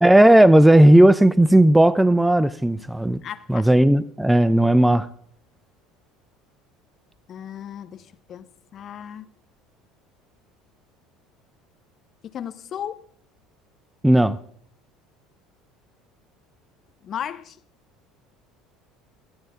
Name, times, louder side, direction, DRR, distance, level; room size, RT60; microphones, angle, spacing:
voice 1, 0.0-3.2 3.5-5.1 14.0-14.4, right 1 dB, 5° right, 0.4 m, -15 dB
voice 2, 3.2-3.7 7.3-9.3 12.2-13.0 17.0-17.6, left 9 dB, 40° left, 0.8 m, -35 dB
25.5 x 14.5 x 2.4 m
figure-of-eight pair, 65°, 0 cm